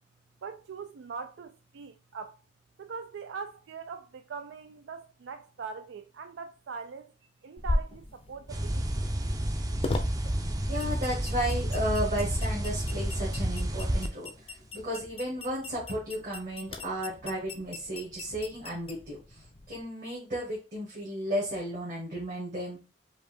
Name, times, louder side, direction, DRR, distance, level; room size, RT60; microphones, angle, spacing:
voice 1, 0.4-2.4 2.8-7.1 7.4-8.9, right 5 dB, 85° right, 0.4 m, -41 dB
sound 1, 7.6-19.8, left 2 dB, 30° left, 0.5 m, -39 dB
sound 2, 8.5-14.1, right 1 dB, 20° right, 0.5 m, -30 dB
voice 2, 10.7-22.8, equal, 50° right, 1.7 m, -34 dB
4.8 x 2.6 x 3.4 m
head